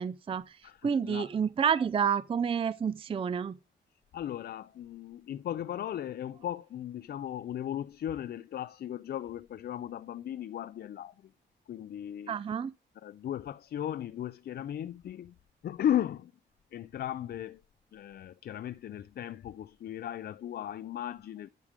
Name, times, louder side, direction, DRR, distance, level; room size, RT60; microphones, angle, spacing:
voice 1, 0.0-0.6 0.8-3.6 12.3-12.7, right 7 dB, 30° right, 0.4 m, -29 dB
voice 2, 0.6-1.3 4.1-11.3 11.7-12.4 13.0-15.3 15.6-16.3 16.7-17.6 17.9-21.5, left 11 dB, 55° left, 0.4 m, -36 dB
10.5 x 4.9 x 5.1 m
cardioid pair, 100°, 19 cm